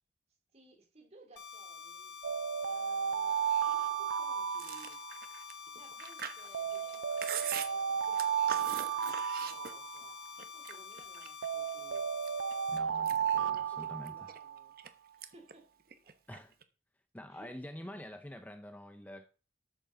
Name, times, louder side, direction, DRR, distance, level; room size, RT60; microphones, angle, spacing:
voice 1, 0.5-2.1 2.6-5.0 5.7-10.2 10.5-12.1 12.9-14.7 15.2-15.7 16.0-16.1 17.3-17.5 17.8-18.0, right 3 dB, 35° right, 3.0 m, -60 dB
sound 1, 1.4-12.8, left 6 dB, 65° left, 1.5 m, -48 dB
sound 2, 2.2-5.4 6.5-10.3 11.4-14.6, right 8 dB, 75° right, 0.4 m, -34 dB
Chewing mastication, 4.5-10.0 10.4-11.5 11.9-12.5 12.9-14.9 15.2-15.5 15.8-16.6, right 8 dB, 50° right, 1.0 m, -42 dB
voice 2, 12.7-14.1 16.3-16.5 17.1-19.2, left 1 dB, 10° left, 0.5 m, -47 dB
13.0 x 8.9 x 3.9 m
head